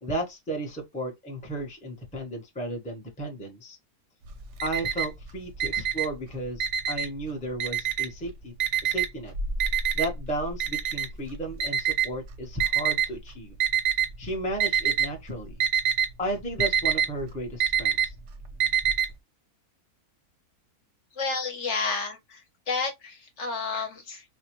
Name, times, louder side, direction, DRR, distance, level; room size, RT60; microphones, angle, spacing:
voice 1, 0.0-3.8 4.6-8.5 8.8-9.3 9.9-13.5 14.2-15.6 16.2-18.1, right 1 dB, 10° left, 0.5 m, -34 dB
Alarm, 4.3-5.2 5.6-7.2 7.6-8.2 8.6-13.1 13.6-14.2 14.5-15.1 15.4-19.1, right 8 dB, 60° right, 0.8 m, -25 dB
voice 2, 21.2-22.4 22.7-24.2, left 4 dB, 55° left, 1.0 m, -30 dB
4.2 x 2.2 x 2.9 m
omnidirectional pair, 1.6 m